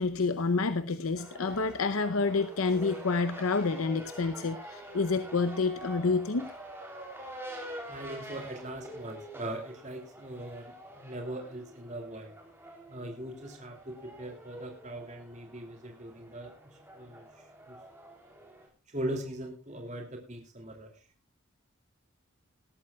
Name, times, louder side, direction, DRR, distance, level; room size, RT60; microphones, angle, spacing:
voice 1, 0.0-6.5, left 4 dB, 85° left, 11 dB, 0.7 m, -28 dB
sound 1, 1.2-18.7, right 1 dB, 10° right, 3.4 m, -46 dB
voice 2, 7.9-12.3 12.9-17.8 18.9-20.9, right 1 dB, 35° right, 3 dB, 2.7 m, -40 dB
19.0 x 13.0 x 2.3 m, 0.33 s
head